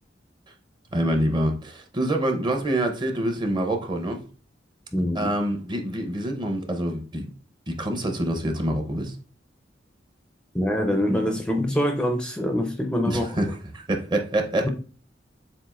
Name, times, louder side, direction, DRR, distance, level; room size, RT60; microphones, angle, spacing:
voice 1, 0.9-4.3 5.1-7.3 7.7-9.1 13.1-14.7, right 1 dB, 25° right, 0.7 m, -26 dB
voice 2, 4.9-5.3 10.5-13.3 14.6-14.7, equal, 5° left, 0.5 m, -24 dB
7.3 x 2.5 x 2.4 m
head